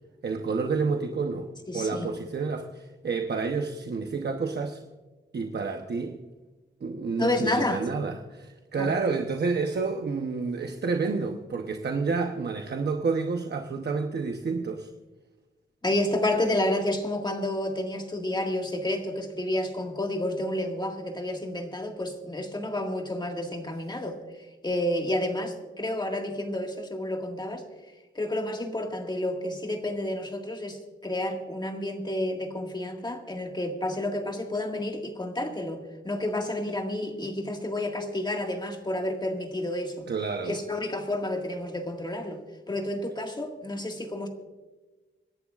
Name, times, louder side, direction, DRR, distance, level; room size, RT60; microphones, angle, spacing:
voice 1, 0.2-4.8 5.3-6.2 6.8-14.9 40.1-40.6, right 4 dB, 60° right, 4 dB, 0.9 m, -29 dB
voice 2, 1.7-2.1 7.2-7.8 8.8-9.0 15.8-24.2 24.6-27.7 28.2-40.1 40.5-42.4 42.7-44.3, left 1 dB, 20° left, 3 dB, 1.8 m, -30 dB
26.0 x 11.0 x 2.4 m, 1.2 s
wide cardioid pair, 145°, 20 cm